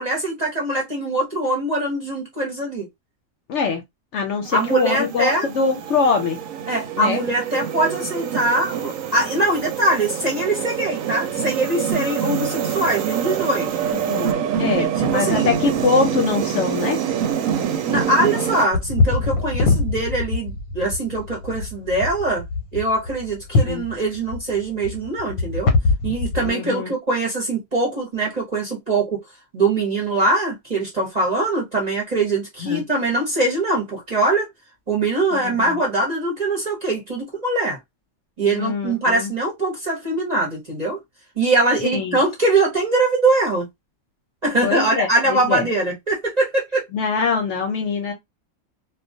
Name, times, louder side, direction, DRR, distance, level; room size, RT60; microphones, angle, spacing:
voice 1, 0.0-2.9 4.5-5.5 6.7-13.8 14.7-15.6 17.8-22.4 22.7-25.7 26.0-29.2 29.5-34.5 34.9-37.8 38.4-41.0 41.4-43.7 44.4-46.8, right 2 dB, 35° right, 0.7 m, -22 dB
voice 2, 3.5-3.8 4.1-6.4 7.0-7.2 14.1-17.0 23.6-23.8 26.4-26.9 32.6-32.8 35.3-35.8 38.5-39.3 41.9-42.2 44.6-45.7 46.9-48.1, left 5 dB, 65° left, 0.8 m, -23 dB
sound 1, 4.4-18.7, right 8 dB, 75° right, 0.9 m, -26 dB
sound 2, 18.7-26.5, left 3 dB, 85° left, 1.1 m, -23 dB
2.3 x 2.2 x 2.6 m
omnidirectional pair, 1.5 m